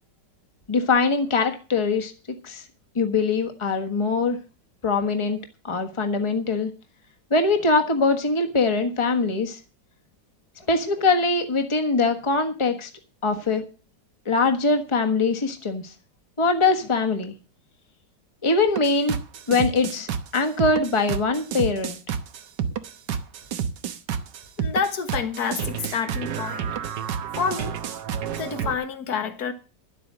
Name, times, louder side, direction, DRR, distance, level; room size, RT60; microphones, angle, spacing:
voice 1, 0.7-2.6 2.9-4.4 4.8-5.4 5.6-6.7 7.3-9.6 10.7-12.9 13.2-13.6 14.2-15.8 16.4-17.3 18.4-19.2 19.5-22.0, left 3 dB, 20° left, 1.3 m, -22 dB
sound 1, 18.7-28.8, right 7 dB, 75° right, 1.7 m, -29 dB
voice 2, 24.6-26.6 27.4-27.8 28.3-29.5, left 6 dB, 60° left, 2.0 m, -28 dB
11.5 x 8.4 x 7.5 m
omnidirectional pair, 1.9 m